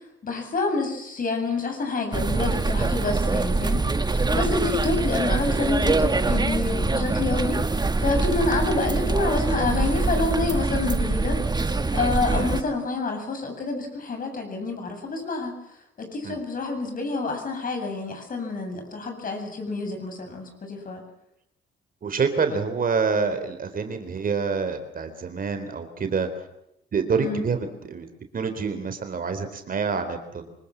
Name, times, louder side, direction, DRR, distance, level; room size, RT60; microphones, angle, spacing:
voice 1, 0.2-11.4 11.9-15.6 16.0-21.0 27.2-27.4, left 3 dB, 45° left, 4 dB, 8.0 m, -28 dB
sound 1, 2.1-12.6, right 3 dB, 20° right, 1.7 m, -24 dB
voice 2, 22.0-26.3 26.9-28.1 28.3-30.5, right 5 dB, 45° right, 8 dB, 3.8 m, -27 dB
25.5 x 20.0 x 7.4 m, 0.79 s
cardioid pair, 90°, 20 cm